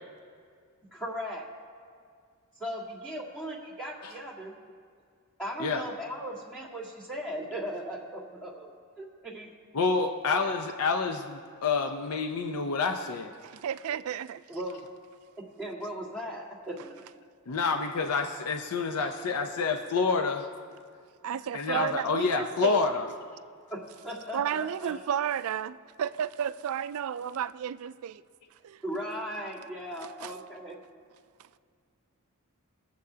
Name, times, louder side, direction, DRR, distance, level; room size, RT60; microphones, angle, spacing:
voice 1, 0.9-1.5 2.6-4.5 5.4-9.5 10.4-10.5 14.5-14.8 15.4-16.9 21.3-21.4 21.7-21.8 23.7-25.0 28.8-30.8, equal, 5° left, 1.8 m, -38 dB
voice 2, 9.7-13.3 17.5-20.5 21.5-23.1, left 4 dB, 80° left, 0.6 m, -28 dB
voice 3, 13.4-14.4 21.2-22.8 24.3-28.2 28.6-28.8 30.2-30.3, right 8 dB, 70° right, 0.3 m, -32 dB
21.5 x 7.7 x 2.8 m
head